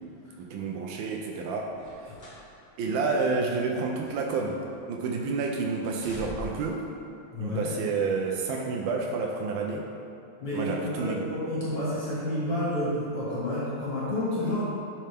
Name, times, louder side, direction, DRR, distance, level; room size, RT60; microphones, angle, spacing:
voice 1, 0.4-2.1 2.8-4.6 4.9-6.8 7.4-9.9 10.5-11.3, right 4 dB, 80° right, 0 dB, 1.4 m, -29 dB
sound 1, 1.8-2.5 2.9-3.0 3.7-4.8 5.1-5.4 5.8-6.8 7.6-7.8, left 1 dB, 20° left, 1.7 m, -44 dB
voice 2, 7.3-7.7 10.4-14.6, left 1 dB, 65° left, -9 dB, 2.6 m, -30 dB
11.5 x 4.5 x 3.4 m, 2.5 s
omnidirectional pair, 2.1 m